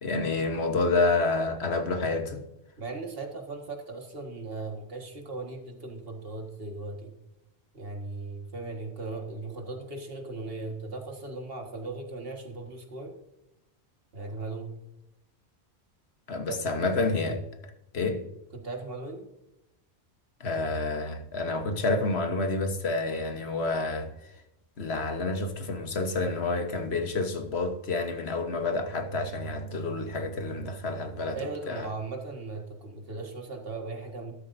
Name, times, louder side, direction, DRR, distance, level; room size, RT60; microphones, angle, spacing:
voice 1, 0.0-2.4 16.3-17.4 17.9-18.2 20.4-24.1 24.8-31.4 31.7-31.9, left 3 dB, 70° left, 1.5 m, -29 dB
voice 2, 2.8-7.1 7.7-13.1 14.1-14.7 16.5-16.6 18.5-19.2 31.4-34.3, right 3 dB, 60° right, 1.9 m, -38 dB
13.0 x 12.0 x 2.7 m
omnidirectional pair, 1.1 m